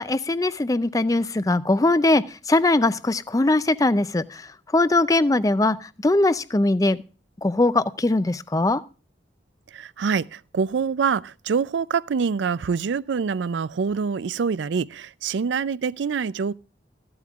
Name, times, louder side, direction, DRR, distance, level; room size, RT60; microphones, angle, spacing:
voice 1, 0.0-4.4 4.7-7.0 7.4-8.8, left 2 dB, 20° left, 0.4 m, -21 dB
voice 2, 9.7-16.5, right 5 dB, 75° right, 0.4 m, -25 dB
14.5 x 12.0 x 2.4 m
head